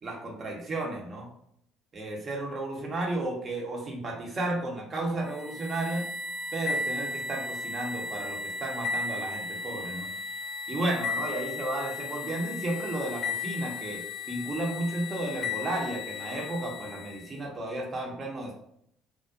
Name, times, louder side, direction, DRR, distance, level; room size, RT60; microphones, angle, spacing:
voice 1, 0.0-1.3 1.9-6.1 6.5-10.1 10.7-14.0 14.3-18.5, right 2 dB, 40° right, 0 dB, 0.8 m, -33 dB
sound 1, 5.3-17.4, left 4 dB, 35° left, 0.6 m, -35 dB
2.4 x 2.1 x 2.5 m, 0.71 s
hypercardioid pair, 55°, 0 cm